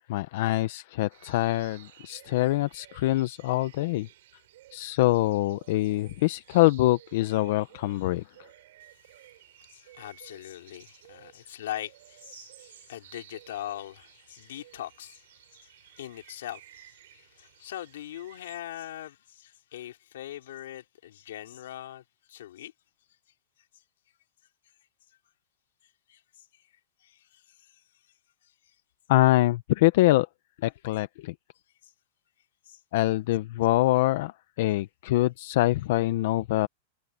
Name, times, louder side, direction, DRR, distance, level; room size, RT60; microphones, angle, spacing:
voice 1, 0.1-4.1 4.7-8.2 29.1-30.3 30.6-31.3 32.9-36.7, left 17 dB, 50° left, 0.6 m, -24 dB
sound 1, 1.1-18.6, right 15 dB, 60° right, 6.1 m, -55 dB
voice 2, 9.6-22.7 25.8-26.6 27.0-27.8 28.4-28.8 31.8-31.9 32.7-32.8, left 12 dB, 70° left, 4.0 m, -42 dB
supercardioid pair, 175°, 0 cm